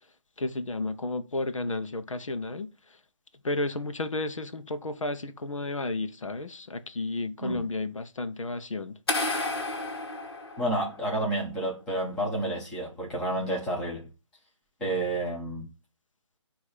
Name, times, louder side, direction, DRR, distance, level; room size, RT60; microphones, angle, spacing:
voice 1, 0.4-2.7 3.4-9.0, left 2 dB, 90° left, 1.2 m, -32 dB
sound 1, 9.1-11.2, left 2 dB, 50° left, 1.9 m, -31 dB
voice 2, 10.6-14.1 14.8-15.7, right 1 dB, 5° left, 1.1 m, -30 dB
8.7 x 3.1 x 5.0 m
hypercardioid pair, 170°, 16 cm